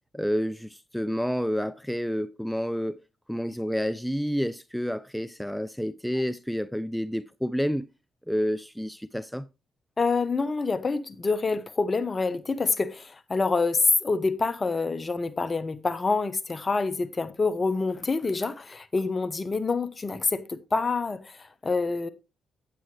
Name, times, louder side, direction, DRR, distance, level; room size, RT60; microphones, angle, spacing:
voice 1, 0.1-3.0 3.3-7.9 8.3-9.5, equal, ahead, 0.5 m, -29 dB
voice 2, 10.0-22.1, left 4 dB, 35° left, 1.1 m, -27 dB
9.1 x 8.9 x 3.2 m
supercardioid pair, 50°, 0 cm